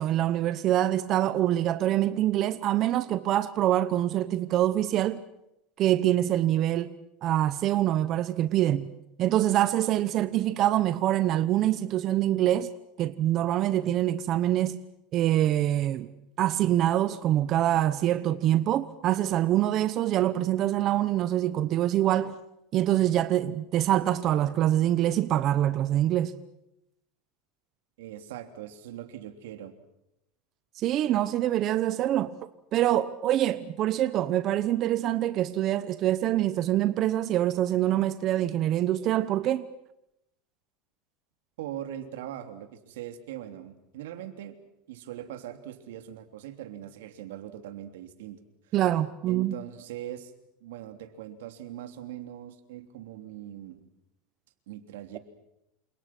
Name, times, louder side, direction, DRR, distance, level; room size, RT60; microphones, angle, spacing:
voice 1, 0.0-5.2 5.8-6.9 7.2-8.9 9.2-12.7 13.0-14.8 15.1-16.1 16.4-22.4 22.7-26.3 30.7-32.3 32.7-39.7 48.7-49.6, right 12 dB, 35° right, 13 dB, 1.0 m, -25 dB
voice 2, 28.0-29.7 41.6-44.6 44.9-48.4 48.7-48.8 49.3-50.3 50.6-53.8 54.7-55.2, right 11 dB, 85° right, 8 dB, 3.1 m, -41 dB
28.5 x 27.5 x 6.1 m, 0.84 s
supercardioid pair, 155°, 0 cm